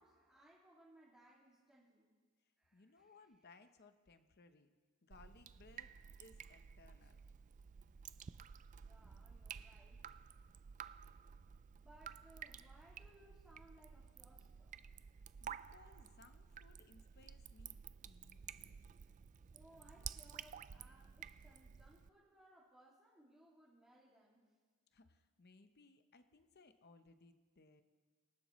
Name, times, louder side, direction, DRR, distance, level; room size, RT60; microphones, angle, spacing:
voice 1, 0.0-2.1 2.6-3.1 8.8-10.1 11.7-14.8 19.5-24.5, right 1 dB, 5° right, -9 dB, 2.3 m, -65 dB
voice 2, 2.4-4.7 5.0-5.9 6.2-7.2 15.4-18.9 24.9-27.8, left 3 dB, 50° left, 9 dB, 0.8 m, -65 dB
Drip, 5.1-22.1, right 8 dB, 35° right, 0.3 m, -53 dB
26.0 x 11.5 x 3.1 m, 1.5 s
head